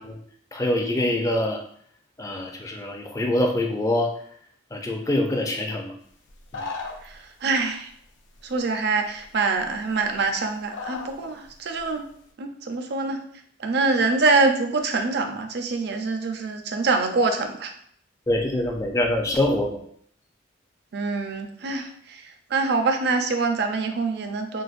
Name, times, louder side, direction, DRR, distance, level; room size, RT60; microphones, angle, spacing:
voice 1, 0.5-1.6 2.2-4.1 4.7-5.9 6.5-6.6 18.3-19.8, left 1 dB, 15° left, 2 dB, 0.4 m, -24 dB
sound 1, 6.3-7.2 8.3-8.5 9.2-9.3 9.6-10.2 10.7-11.2 11.4-11.9, left 4 dB, 75° left, 0.5 m, -35 dB
voice 2, 7.4-7.9 8.4-12.0 12.4-13.2 13.6-17.7 20.9-21.9 22.5-24.6, right 3 dB, 55° right, 5 dB, 0.4 m, -24 dB
3.9 x 2.5 x 2.4 m, 0.63 s
head